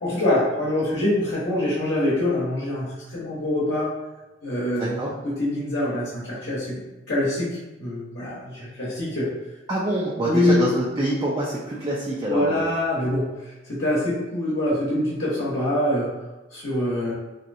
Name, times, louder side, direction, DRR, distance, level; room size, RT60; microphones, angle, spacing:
voice 1, 0.0-3.9 4.4-9.3 10.2-10.7 12.3-16.1 16.5-17.1, left 1 dB, 60° left, -8 dB, 0.9 m, -25 dB
voice 2, 4.7-5.1 9.7-12.6, right 1 dB, 25° right, -5 dB, 0.4 m, -26 dB
3.0 x 2.7 x 2.6 m, 1.1 s
head